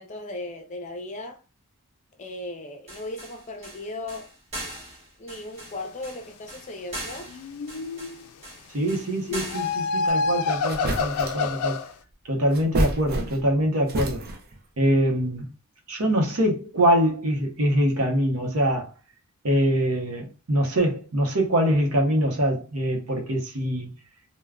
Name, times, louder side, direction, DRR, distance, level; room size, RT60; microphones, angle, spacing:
voice 1, 0.0-1.4 2.2-4.3 5.2-7.3, left 2 dB, 35° left, 0.6 m, -37 dB
sound 1, 2.9-10.1, right 1 dB, 30° right, 1.2 m, -40 dB
sound 2, 7.3-8.3 9.3-11.9, left 4 dB, 85° left, 0.4 m, -27 dB
voice 2, 8.7-11.8 12.3-14.2 14.8-15.5 15.9-18.9 19.4-23.9, equal, 75° right, 0.8 m, -24 dB
sound 3, 10.2-10.3 10.7-11.5 12.5-13.6 13.9-14.6, right 1 dB, 45° right, 0.5 m, -28 dB
3.4 x 2.2 x 2.3 m
head